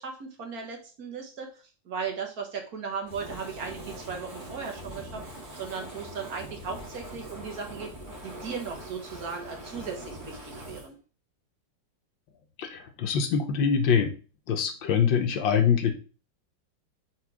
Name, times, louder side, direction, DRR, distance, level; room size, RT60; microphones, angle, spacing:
voice 1, 0.0-1.5 1.8-7.9 8.2-11.0, right 5 dB, 55° right, 3 dB, 1.5 m, -37 dB
Fire, 3.0-10.9, right 1 dB, 25° right, 1.6 m, -42 dB
voice 2, 12.6-14.1 14.5-15.9, left 7 dB, 80° left, 6 dB, 1.6 m, -24 dB
4.6 x 4.4 x 4.7 m, 0.35 s
omnidirectional pair, 2.0 m